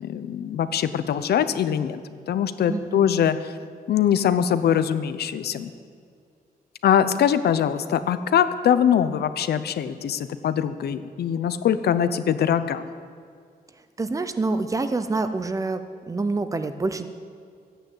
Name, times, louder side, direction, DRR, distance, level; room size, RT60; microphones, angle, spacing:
voice 1, 0.0-2.0 2.3-3.4 3.9-5.7 6.8-12.8, left 9 dB, 80° left, 12 dB, 0.7 m, -22 dB
voice 2, 2.7-3.2 14.0-15.8 16.1-17.1, right 3 dB, 20° right, 10 dB, 0.7 m, -26 dB
13.5 x 9.2 x 7.9 m, 2.3 s
wide cardioid pair, 170°, 16 cm